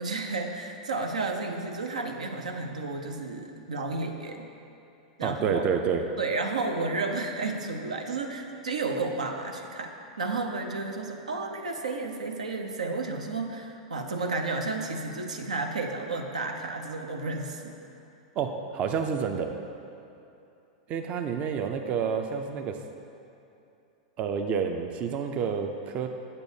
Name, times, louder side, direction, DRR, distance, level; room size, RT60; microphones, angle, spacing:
voice 1, 0.0-4.5 5.2-5.6 6.2-9.9 10.2-17.8, right 3 dB, 90° right, 3 dB, 0.6 m, -32 dB
voice 2, 5.2-6.0 18.4-19.5 20.9-22.8 24.2-26.1, right 6 dB, 40° right, 5 dB, 0.4 m, -29 dB
8.2 x 6.8 x 2.7 m, 2.8 s
hypercardioid pair, 105°, 4 cm